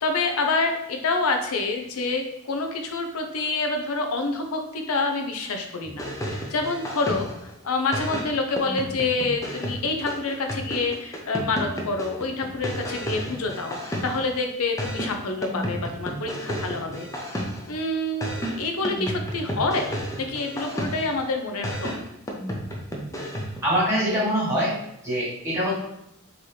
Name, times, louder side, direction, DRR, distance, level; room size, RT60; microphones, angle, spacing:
voice 1, 0.0-7.3 7.6-17.1 17.7-18.2 18.6-22.0, left 3 dB, 90° left, 4 dB, 0.6 m, -27 dB
sound 1, 5.9-7.5 7.9-14.4 14.8-17.8 18.2-21.2 21.6-23.7, equal, 15° left, 0.4 m, -32 dB
voice 2, 23.6-24.7 25.0-25.7, equal, 15° right, -8 dB, 1.4 m, -23 dB
3.8 x 2.9 x 3.2 m, 0.83 s
head